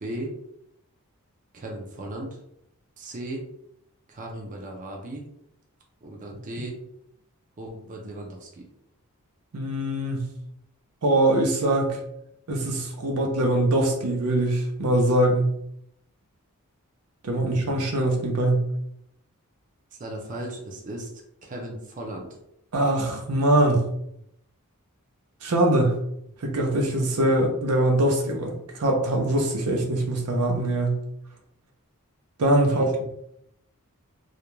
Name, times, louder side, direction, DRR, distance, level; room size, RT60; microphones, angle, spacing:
voice 1, 0.0-0.3 1.5-2.4 3.0-3.4 4.1-5.2 6.0-6.8 7.6-8.7 17.4-17.8 20.0-21.1 21.4-22.3 32.6-32.9, right 1 dB, 35° right, 0 dB, 0.4 m, -36 dB
voice 2, 9.5-10.3 11.0-12.0 12.5-15.5 17.2-18.7 22.7-23.8 25.4-26.0 26.4-31.0 32.4-32.9, right 1 dB, 80° right, 2 dB, 0.6 m, -22 dB
2.4 x 2.1 x 3.0 m, 0.75 s
head